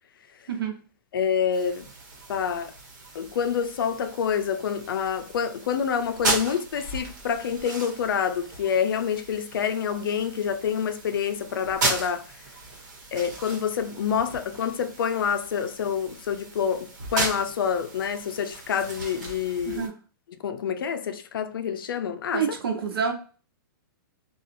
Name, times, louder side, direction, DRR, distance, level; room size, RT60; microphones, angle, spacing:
voice 1, 1.1-1.9 2.3-2.7 3.1-12.3 13.1-19.9 20.4-22.5, left 7 dB, 70° left, 0.5 m, -27 dB
sound 1, 1.5-19.9, right 3 dB, 55° right, 1.1 m, -36 dB
voice 2, 22.3-23.1, right 6 dB, 90° right, 1.0 m, -27 dB
2.9 x 2.3 x 2.5 m
hypercardioid pair, 180°, 12 cm